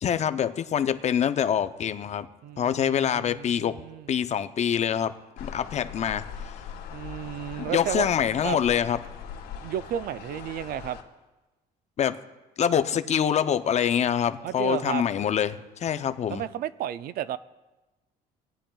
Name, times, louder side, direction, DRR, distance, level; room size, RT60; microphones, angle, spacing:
voice 1, 0.0-2.3 2.6-3.7 4.1-5.1 5.4-6.2 7.6-9.0 12.0-12.2 12.6-16.4, left 8 dB, 40° left, 11 dB, 0.6 m, -25 dB
voice 2, 2.4-4.1 6.9-8.1 8.4-8.6 9.6-11.0 14.4-15.0 16.3-17.4, right 11 dB, 60° right, 15 dB, 0.4 m, -33 dB
sound 1, 5.4-11.0, left 7 dB, 80° left, 1.8 m, -41 dB
19.0 x 10.0 x 2.3 m, 1.1 s
cardioid pair, 110°, 17 cm